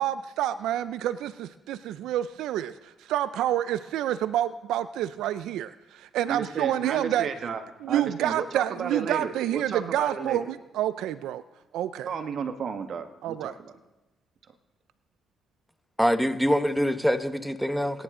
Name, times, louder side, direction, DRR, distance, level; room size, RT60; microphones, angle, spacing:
voice 1, 0.0-7.3 7.8-11.4 11.7-12.1 13.2-13.5, right 12 dB, 85° right, 14 dB, 0.4 m, -28 dB
voice 2, 6.3-7.6 7.9-10.5 12.1-13.7, right 6 dB, 60° right, 7 dB, 1.3 m, -33 dB
voice 3, 16.0-18.0, equal, ahead, 10 dB, 0.9 m, -24 dB
23.5 x 10.0 x 3.7 m, 1.1 s
cardioid pair, 90°, 0 cm